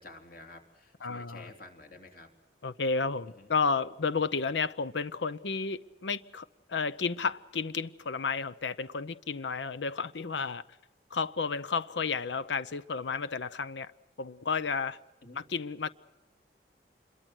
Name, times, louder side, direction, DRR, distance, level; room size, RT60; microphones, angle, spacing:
voice 1, 0.0-2.3 3.4-3.5 15.2-15.4, left 2 dB, 55° left, 3.5 m, -50 dB
voice 2, 1.0-1.5 2.6-10.6 11.1-13.9 14.2-15.0 15.4-15.9, left 5 dB, 90° left, 0.7 m, -32 dB
27.0 x 22.5 x 6.2 m
head